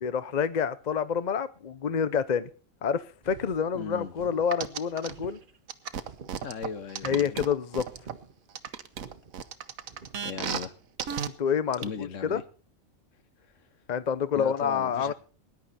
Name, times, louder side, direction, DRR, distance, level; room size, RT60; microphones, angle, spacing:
voice 1, 0.0-2.5 2.8-5.4 7.0-7.8 11.3-12.4 13.9-15.1, left 7 dB, 40° left, 0.7 m, -28 dB
sound 1, 3.2-10.3, right 5 dB, 40° right, 1.1 m, -50 dB
voice 2, 3.7-4.3 6.4-7.5 10.2-10.8 11.8-12.4 14.3-15.1, left 6 dB, 65° left, 1.4 m, -38 dB
sound 2, 4.5-5.1 5.7-8.1 8.6-10.7 11.0-11.3 11.7-11.8, right 7 dB, 80° right, 1.4 m, -33 dB
19.5 x 10.5 x 4.2 m
omnidirectional pair, 1.4 m